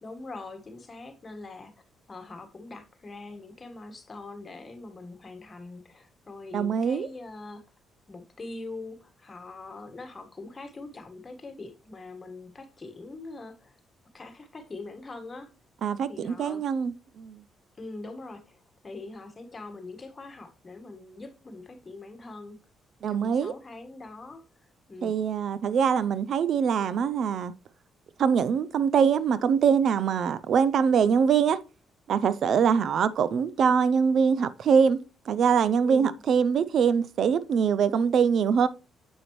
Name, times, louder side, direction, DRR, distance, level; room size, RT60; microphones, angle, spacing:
voice 1, 0.0-1.7 2.1-7.6 8.1-13.7 14.1-15.5 16.1-16.6 17.8-22.6 23.1-24.4 24.9-25.1 35.8-36.2, left 3 dB, 30° left, 1.4 m, -42 dB
voice 2, 6.5-7.1 15.8-17.4 23.0-23.5 25.0-27.5 28.2-31.6 32.1-35.0 35.3-38.7, right 7 dB, 65° right, 0.4 m, -23 dB
8.0 x 5.0 x 3.0 m
cardioid pair, 90°, 0 cm